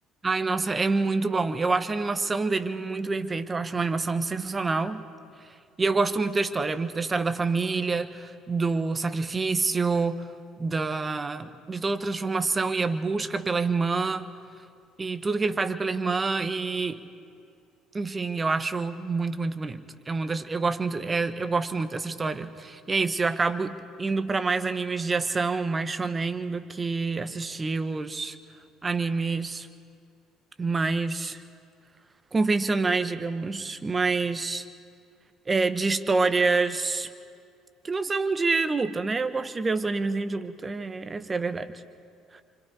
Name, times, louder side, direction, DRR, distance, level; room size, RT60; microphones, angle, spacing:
voice 1, 0.2-5.0 5.8-10.3 10.6-14.3 15.0-17.0 17.9-28.4 28.8-29.7 30.6-31.4 32.3-34.6 35.5-37.1 37.8-41.7 42.3-42.4, right 3 dB, 25° right, 11 dB, 1.3 m, -27 dB
28.0 x 25.0 x 4.9 m, 2.3 s
figure-of-eight pair, 55°, 0 cm